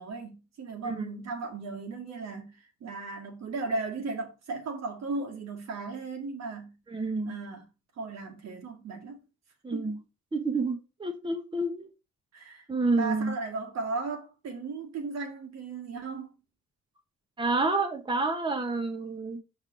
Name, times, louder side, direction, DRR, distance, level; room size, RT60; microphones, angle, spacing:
voice 1, 0.0-2.5 2.8-6.7 7.2-7.7 8.0-9.2 9.7-10.0 12.3-12.6 12.9-16.3, right 3 dB, 60° right, 1.6 m, -36 dB
voice 2, 6.9-7.3 9.6-10.0 10.3-11.9 12.7-13.3 17.4-19.4, right 3 dB, 15° right, 1.1 m, -29 dB
5.5 x 4.9 x 3.8 m
cardioid pair, 90°, 30 cm